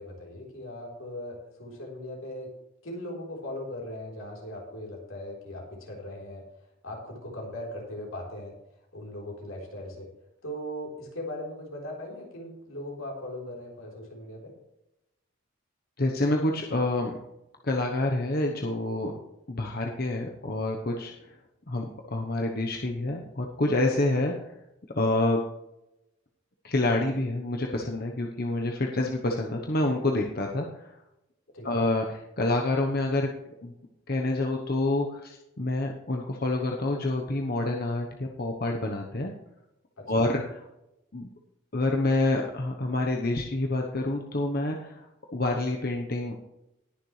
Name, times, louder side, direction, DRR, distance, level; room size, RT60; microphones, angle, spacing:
voice 1, 0.0-2.5 2.8-6.5 6.8-8.5 8.9-10.1 10.4-14.5 31.5-31.8 40.0-40.2, left 1 dB, 80° left, -2 dB, 3.8 m, -39 dB
voice 2, 16.0-17.2 17.6-19.1 19.5-21.3 21.7-24.5 24.9-25.4 26.6-31.0 31.6-33.3 33.6-33.7 34.1-39.3 40.1-40.6 41.1-41.3 41.7-45.1 45.3-46.3, left 2 dB, 45° left, 1 dB, 1.0 m, -27 dB
19.5 x 6.7 x 3.3 m, 0.89 s
head